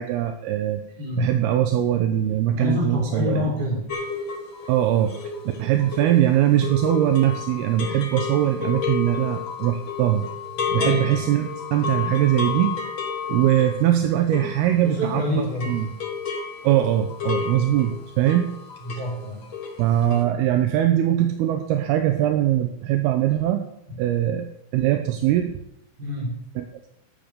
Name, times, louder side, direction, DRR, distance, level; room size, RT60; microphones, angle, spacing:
voice 1, 0.0-0.8 1.2-3.5 4.7-5.2 5.6-10.3 10.7-12.8 13.3-15.9 16.6-18.5 18.9-19.0 19.8-23.6 24.0-24.5 24.7-25.6 26.6-26.7, right 12 dB, 80° right, 6 dB, 2.4 m, -21 dB
voice 2, 1.0-1.3 2.5-3.8 10.6-11.3 14.8-15.7 18.8-19.4 26.0-26.4, left 2 dB, 20° right, -5 dB, 6.3 m, -27 dB
sound 1, 3.9-15.2 15.4-19.2 19.4-19.8 20.1-20.2, left 6 dB, 75° left, 1.1 m, -31 dB
12.5 x 7.6 x 6.7 m, 0.80 s
omnidirectional pair, 5.2 m